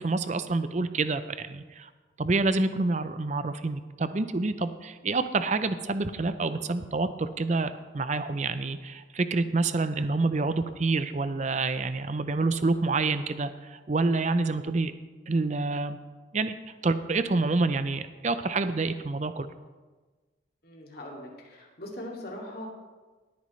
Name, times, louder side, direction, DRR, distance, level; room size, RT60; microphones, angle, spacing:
voice 1, 0.0-1.9 2.2-14.9 15.3-16.0 16.3-16.5 16.8-19.5, right 3 dB, 35° right, 11 dB, 0.5 m, -27 dB
voice 2, 20.6-22.7, left 1 dB, 50° left, -1 dB, 2.4 m, -41 dB
18.5 x 9.3 x 3.2 m, 1.3 s
head